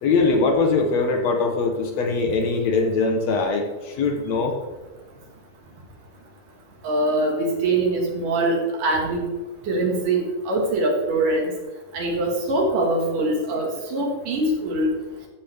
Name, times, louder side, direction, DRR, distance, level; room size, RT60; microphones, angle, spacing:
voice 1, 0.0-4.5, left 3 dB, 75° left, 3 dB, 1.6 m, -22 dB
voice 2, 6.8-9.2 9.7-10.2 10.5-11.5 11.9-14.9, right 2 dB, 65° right, 0 dB, 3.2 m, -23 dB
14.5 x 6.8 x 3.4 m, 1.3 s
omnidirectional pair, 4.3 m